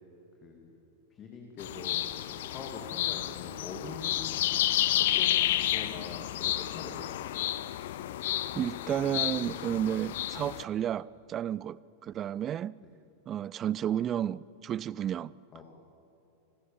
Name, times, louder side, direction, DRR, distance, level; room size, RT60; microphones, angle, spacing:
voice 1, 1.1-4.4 5.0-7.7 12.8-12.9 15.5-15.6, left 4 dB, 30° left, 2.8 m, -44 dB
sound 1, 1.6-10.6, left 14 dB, 55° left, 0.7 m, -31 dB
voice 2, 8.5-12.7 13.3-15.3, right 10 dB, 30° right, 0.4 m, -32 dB
27.0 x 17.5 x 7.3 m
figure-of-eight pair, 90°, 0 cm